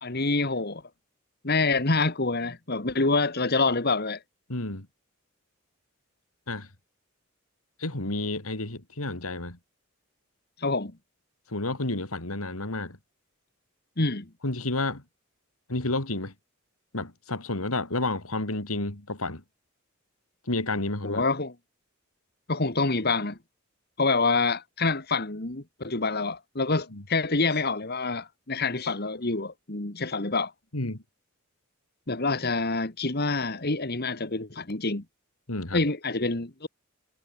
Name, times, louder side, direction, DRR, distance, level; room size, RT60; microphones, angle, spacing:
voice 1, 0.0-0.8 1.4-4.2 10.6-10.9 14.0-14.3 21.0-21.5 22.5-23.4 24.0-30.5 32.1-35.0 35.7-36.7, left 3 dB, 50° left, 2.0 m, -26 dB
voice 2, 4.5-4.9 6.5-6.7 7.8-9.6 11.5-13.0 14.4-15.0 15.7-16.3 16.9-19.4 20.5-21.2 26.9-27.0 30.7-31.0 35.5-35.8, left 2 dB, 90° left, 3.6 m, -30 dB
head